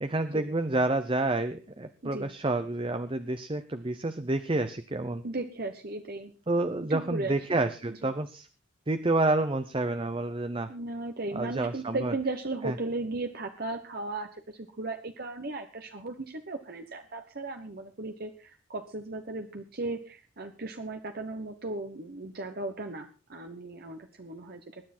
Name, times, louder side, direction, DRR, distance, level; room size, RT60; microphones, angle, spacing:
voice 1, 0.0-5.2 6.5-8.5 8.9-10.7 11.3-12.1 12.6-12.7, right 2 dB, 25° right, 10 dB, 0.8 m, -29 dB
voice 2, 2.0-2.3 5.2-6.3 6.9-7.6 7.9-8.1 10.7-24.8, right 2 dB, 50° right, 6 dB, 1.2 m, -36 dB
21.0 x 10.0 x 4.4 m, 0.35 s
head